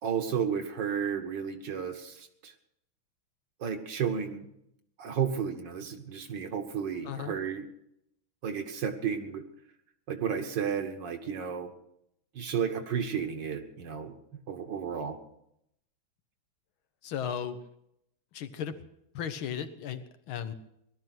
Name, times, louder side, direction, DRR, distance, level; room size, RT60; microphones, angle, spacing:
voice 1, 0.0-2.5 3.6-4.5 5.0-7.7 8.4-9.4 10.1-11.7 12.4-15.2, right 7 dB, 65° right, 6 dB, 1.9 m, -32 dB
voice 2, 7.0-7.4 17.0-17.6 18.3-18.8 19.1-20.5, left 8 dB, 80° left, 10 dB, 1.8 m, -35 dB
18.5 x 12.5 x 6.0 m, 0.77 s
omnidirectional pair, 2.2 m